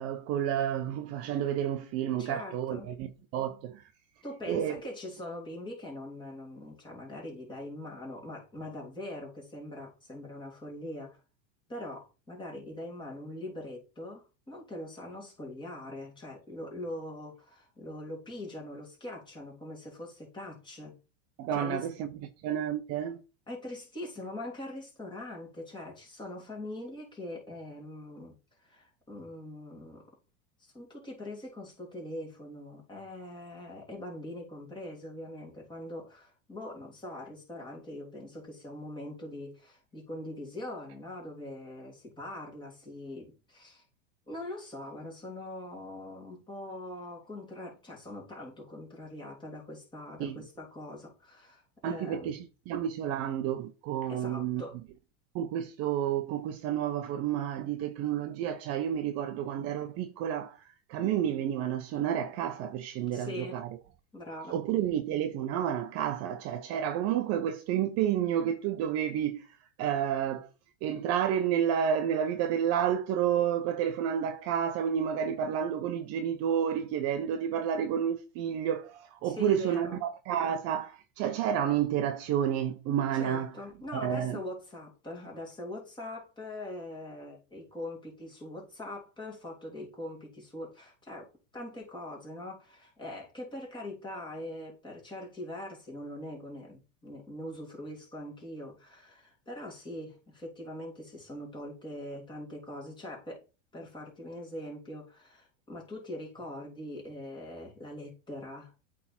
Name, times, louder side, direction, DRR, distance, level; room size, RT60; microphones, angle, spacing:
voice 1, 0.0-3.1 3.3-3.8 4.5-4.7 21.4-22.1 22.4-23.2 50.2-50.4 51.8-54.6 55.3-60.6 60.9-63.8 64.5-69.4 69.8-70.5 70.8-83.5 83.9-84.4, right 9 dB, 40° right, 0.7 m, -30 dB
voice 2, 2.2-3.0 4.2-11.2 11.7-20.9 21.5-21.9 23.5-28.3 28.6-30.0 30.6-43.8 44.3-52.4 54.1-54.8 63.1-63.6 64.1-64.6 79.2-80.0 83.1-103.5 103.7-108.8, left 1 dB, 10° left, 3.1 m, -42 dB
8.3 x 3.6 x 4.4 m
supercardioid pair, 135°, 38 cm